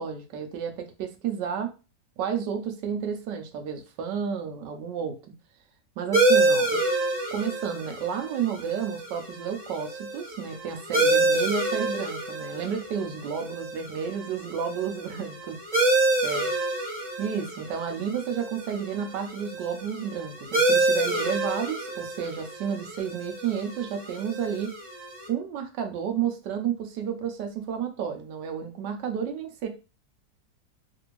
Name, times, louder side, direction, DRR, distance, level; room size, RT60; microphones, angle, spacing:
voice 1, 0.0-1.7 2.2-5.2 6.0-6.8 7.3-15.6 16.2-16.5 17.2-24.7 25.3-29.7, right 7 dB, 75° right, 5 dB, 1.2 m, -31 dB
sound 1, 6.1-25.3, right 2 dB, 35° right, 0.8 m, -28 dB
3.3 x 2.5 x 3.0 m, 0.31 s
omnidirectional pair, 2.0 m